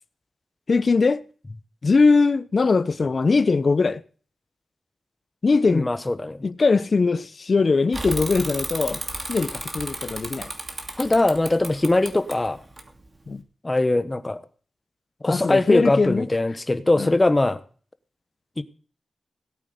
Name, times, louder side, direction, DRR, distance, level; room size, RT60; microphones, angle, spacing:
voice 1, 0.7-1.2 1.8-4.0 5.4-5.9 6.4-9.0 9.3-10.5 13.3-13.4 15.2-16.3 17.0-17.1, left 4 dB, 55° left, 0.7 m, -21 dB
voice 2, 5.7-6.4 11.0-12.6 13.6-14.4 15.2-17.6 18.6-18.7, left 2 dB, 25° left, 1.2 m, -21 dB
Bicycle / Mechanisms, 7.9-13.4, right 2 dB, 35° right, 2.7 m, -34 dB
17.5 x 8.5 x 5.2 m
cardioid pair, 60°, 0 cm